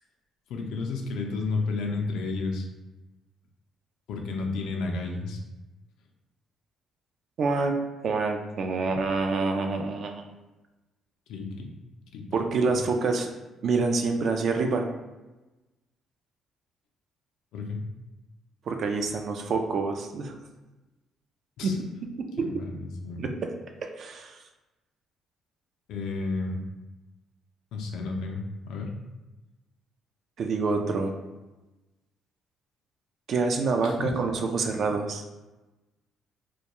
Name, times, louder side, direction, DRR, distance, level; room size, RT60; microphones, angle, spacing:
voice 1, 0.5-2.7 4.1-5.4 8.9-9.0 11.3-11.7 12.1-12.4 17.5-17.8 21.6-21.8 22.4-23.2 25.9-26.6 27.7-28.9 33.8-34.2, left 3 dB, 80° left, 2 dB, 0.4 m, -32 dB
voice 2, 7.4-7.8 8.0-10.2 12.3-13.3 13.6-14.9 18.7-20.3 21.6-21.7 22.4-22.5 23.2-23.3 24.0-24.4 30.4-31.1 33.3-35.2, right 4 dB, 60° right, 4 dB, 0.3 m, -26 dB
2.2 x 2.2 x 2.9 m, 1.1 s
cardioid pair, 80°, 0 cm